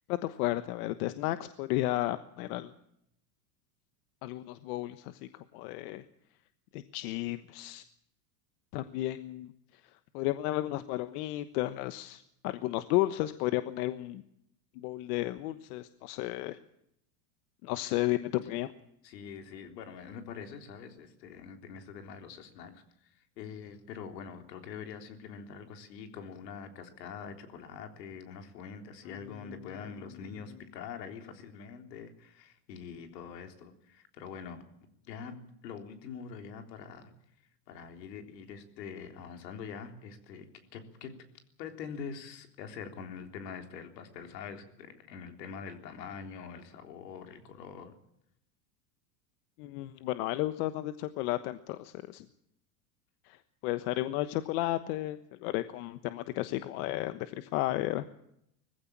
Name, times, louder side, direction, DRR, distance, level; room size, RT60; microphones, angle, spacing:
voice 1, 0.1-2.7 4.2-5.2 5.5-6.0 6.7-7.8 8.7-9.5 10.1-14.2 14.8-16.6 17.6-18.7 49.6-52.2 53.3-53.4 53.6-58.1, left 16 dB, 65° left, 11 dB, 1.2 m, -33 dB
voice 2, 19.0-34.6 35.0-35.3 35.6-37.1 37.7-40.5 40.7-41.1 41.6-47.9, left 6 dB, 85° left, 5 dB, 3.8 m, -44 dB
20.5 x 15.5 x 8.7 m, 0.76 s
supercardioid pair, 125°, 49 cm